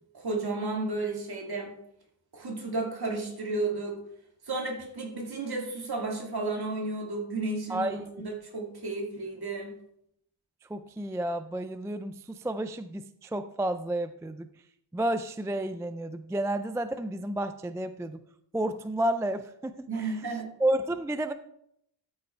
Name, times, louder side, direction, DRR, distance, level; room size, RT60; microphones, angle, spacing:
voice 1, 0.1-1.7 2.3-4.0 4.5-9.7 19.9-20.5, right 2 dB, 55° right, 0 dB, 2.6 m, -33 dB
voice 2, 7.7-8.3 10.7-14.5 14.9-18.2 18.5-20.2 20.6-21.3, right 1 dB, 5° right, 10 dB, 0.3 m, -31 dB
13.0 x 5.3 x 4.5 m, 0.72 s
wide cardioid pair, 120°, 46 cm